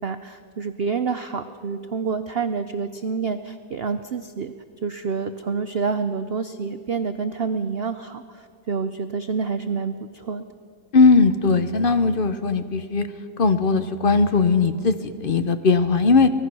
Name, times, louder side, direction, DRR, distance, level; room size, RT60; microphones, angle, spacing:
voice 1, 0.0-4.5 4.8-10.4, right 5 dB, 90° right, 9 dB, 0.5 m, -28 dB
voice 2, 10.9-13.1 13.4-16.3, left 4 dB, 50° left, 10 dB, 0.6 m, -18 dB
24.0 x 19.0 x 6.2 m, 2.2 s
omnidirectional pair, 2.0 m